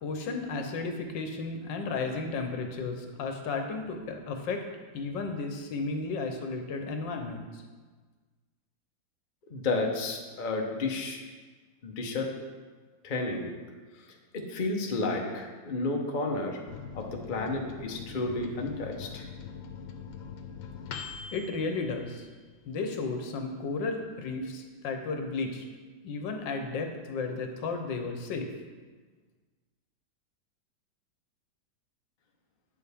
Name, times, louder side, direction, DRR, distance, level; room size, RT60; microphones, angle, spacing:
voice 1, 0.0-4.6 4.9-7.6 21.3-22.3 22.7-25.6 26.0-28.5, left 3 dB, 70° left, 4 dB, 1.5 m, -33 dB
voice 2, 9.5-11.2 11.8-12.3 13.0-13.5 14.3-16.6 16.9-19.2, left 2 dB, 45° left, 1 dB, 0.6 m, -31 dB
Microwave oven, 16.7-22.8 23.2-23.3 23.5-24.1, left 6 dB, 90° left, 1.5 m, -43 dB
9.1 x 6.9 x 3.5 m, 1.4 s
omnidirectional pair, 2.1 m